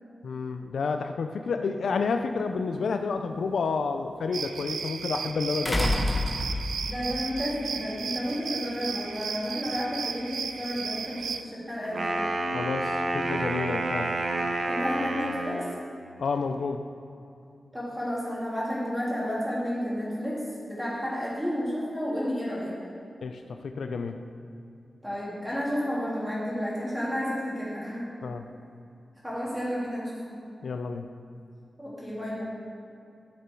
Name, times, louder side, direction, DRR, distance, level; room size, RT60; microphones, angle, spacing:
voice 1, 0.2-5.9 12.5-14.1 16.2-16.8 23.2-24.3 28.2-28.5 30.6-31.1, left 4 dB, 75° left, 6 dB, 0.5 m, -30 dB
sound 1, 2.4-2.5 5.6-6.9 8.3-8.4, left 1 dB, 10° left, 1.0 m, -27 dB
sound 2, 4.3-11.4, right 5 dB, 85° right, 0.4 m, -35 dB
voice 2, 6.8-12.1 14.6-15.6 17.7-22.8 25.0-28.1 29.2-30.4 31.8-32.4, equal, 5° right, -7 dB, 2.8 m, -31 dB
Wind instrument woodwind instrument, 11.8-15.8, right 2 dB, 40° right, 0.7 m, -29 dB
13.0 x 6.8 x 4.6 m, 2.6 s
wide cardioid pair, 175°, 0 cm